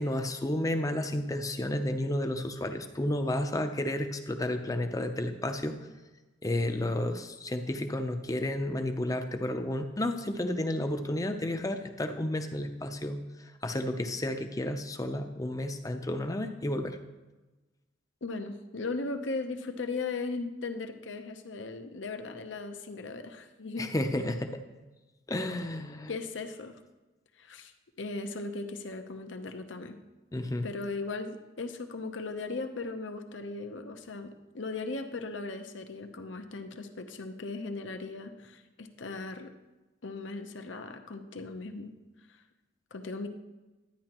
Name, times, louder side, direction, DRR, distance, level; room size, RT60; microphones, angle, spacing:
voice 1, 0.0-5.8 6.4-13.2 13.6-17.0 23.8-24.6 25.3-26.1 30.3-30.7, left 1 dB, 20° left, 6 dB, 0.6 m, -31 dB
voice 2, 18.2-23.9 26.1-26.8 27.4-30.0 30.6-39.5 40.0-41.9 42.9-43.3, left 3 dB, 75° left, 7 dB, 0.8 m, -38 dB
11.5 x 9.6 x 3.0 m, 1.1 s
head